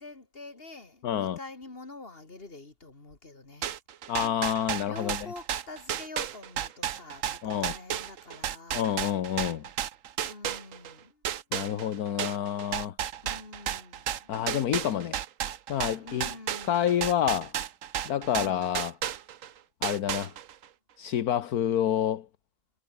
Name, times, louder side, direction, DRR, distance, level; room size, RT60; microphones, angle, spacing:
voice 1, 0.0-3.7 4.8-8.9 10.2-11.2 13.2-14.3 16.0-16.9 18.4-18.7, left 3 dB, 35° left, 3.4 m, -46 dB
voice 2, 1.0-1.4 4.1-5.3 7.4-7.7 8.7-9.6 11.5-13.0 14.3-15.2 15.7-16.3 16.7-17.5 18.0-18.9 19.8-20.3 21.0-22.3, left 10 dB, 75° left, 1.5 m, -28 dB
sound 1, 3.6-10.9 11.2-19.5 19.8-20.6, right 10 dB, 60° right, 1.2 m, -33 dB
omnidirectional pair, 1.6 m